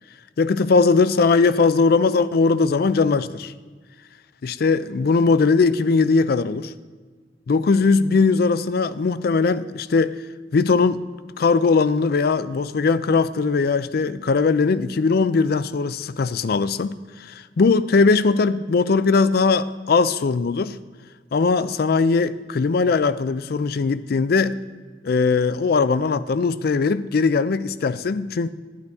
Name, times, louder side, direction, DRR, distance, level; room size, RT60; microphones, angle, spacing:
voice 1, 0.4-3.5 4.4-6.7 7.5-10.1 10.5-11.0 11.4-17.0 17.2-20.8 21.3-24.6 25.0-28.5, left 4 dB, 60° left, 15 dB, 0.4 m, -20 dB
11.0 x 9.3 x 3.5 m, 1.5 s
head